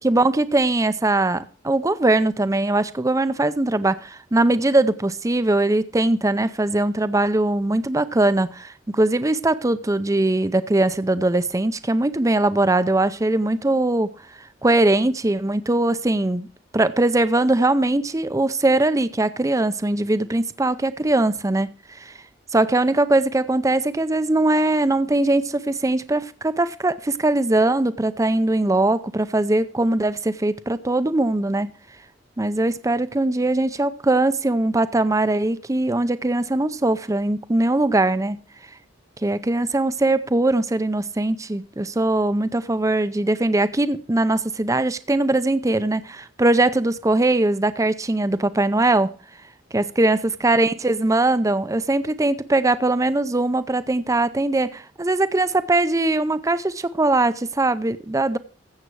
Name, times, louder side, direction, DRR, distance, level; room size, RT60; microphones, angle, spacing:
voice 1, 0.0-14.1 14.6-16.5 16.7-22.1 22.5-31.7 32.4-38.4 39.2-49.1 49.7-58.4, right 2 dB, 15° right, 0.5 m, -21 dB
15.0 x 7.4 x 4.6 m
head